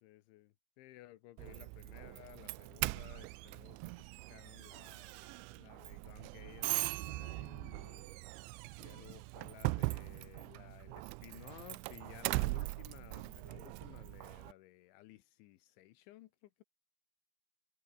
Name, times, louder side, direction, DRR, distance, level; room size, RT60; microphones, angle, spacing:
voice 1, 0.0-8.2 8.8-16.6, left 16 dB, 75° left, 3.2 m, -57 dB
Doorbell, 1.4-14.5, right 23 dB, 85° right, 2.7 m, -40 dB
omnidirectional pair, 5.8 m